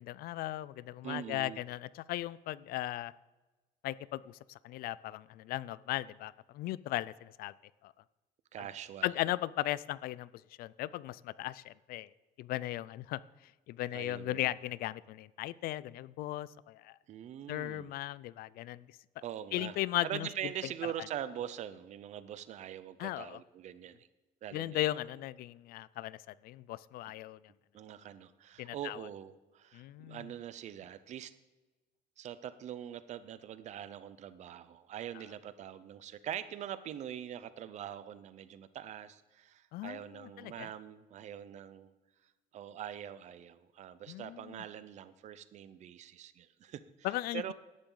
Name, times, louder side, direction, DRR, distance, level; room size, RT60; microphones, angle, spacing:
voice 1, 0.0-3.1 3.8-7.5 7.8-7.9 9.0-10.3 10.6-12.1 12.4-13.2 13.7-16.9 17.5-18.8 19.5-20.3 23.0-23.4 24.5-26.2 26.4-27.4 28.6-29.0 29.7-30.2 39.7-40.7 44.1-44.6 47.0-47.5, left 15 dB, 70° left, 20 dB, 0.4 m, -37 dB
voice 2, 1.0-1.6 8.5-9.1 13.9-14.5 17.1-17.9 19.2-19.8 20.0-24.1 24.4-24.9 27.7-31.3 32.2-41.9 42.5-47.1 47.3-47.5, right 10 dB, 45° right, 14 dB, 0.6 m, -43 dB
17.0 x 11.5 x 3.9 m, 1.2 s
cardioid pair, 180°, 16 cm